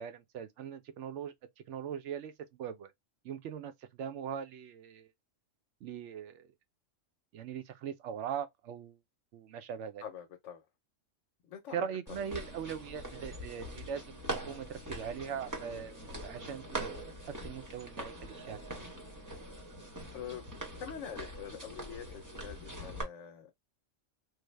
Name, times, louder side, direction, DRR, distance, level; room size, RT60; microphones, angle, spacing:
voice 1, 0.0-1.3 1.7-2.9 3.2-5.1 5.8-6.5 7.3-9.0 9.3-10.0 11.7-14.2 14.5-18.6, right 8 dB, 70° right, 0.9 m, -41 dB
voice 2, 10.0-10.6 11.5-11.9 20.1-20.4 20.8-23.6, left 8 dB, 80° left, 1.0 m, -44 dB
sound 1, 12.1-23.0, right 1 dB, 20° right, 0.7 m, -43 dB
3.3 x 2.1 x 3.1 m
omnidirectional pair, 1.3 m